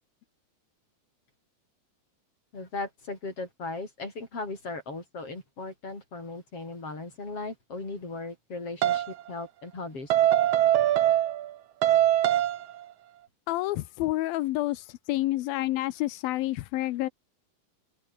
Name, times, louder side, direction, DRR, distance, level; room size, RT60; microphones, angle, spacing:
voice 1, 2.5-10.1, left 3 dB, 40° left, 8.7 m, -37 dB
sound 1, 8.8-9.1 10.1-11.5 11.8-12.7, right 12 dB, 65° right, 1.6 m, -22 dB
voice 2, 13.5-17.1, left 16 dB, 85° left, 2.7 m, -29 dB
omnidirectional pair, 4.2 m